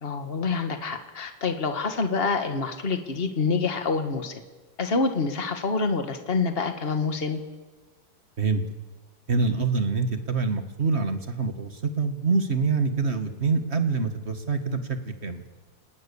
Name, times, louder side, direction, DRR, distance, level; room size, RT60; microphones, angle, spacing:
voice 1, 0.0-4.4 4.8-7.4, left 4 dB, 30° left, 7 dB, 1.9 m, -27 dB
voice 2, 9.3-15.4, right 4 dB, 35° right, 8 dB, 1.9 m, -25 dB
29.5 x 19.5 x 7.1 m, 1.3 s
omnidirectional pair, 2.0 m